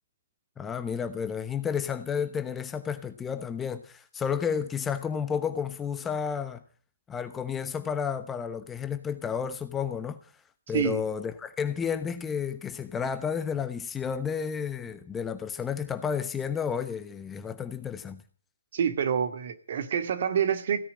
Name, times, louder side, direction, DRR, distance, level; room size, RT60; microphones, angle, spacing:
voice 1, 0.6-6.6 7.1-10.3 10.7-18.2, left 7 dB, 10° left, 1.0 m, -31 dB
voice 2, 18.7-20.8, right 8 dB, 50° right, 2.2 m, -27 dB
16.5 x 9.9 x 8.6 m
figure-of-eight pair, 135°, 0 cm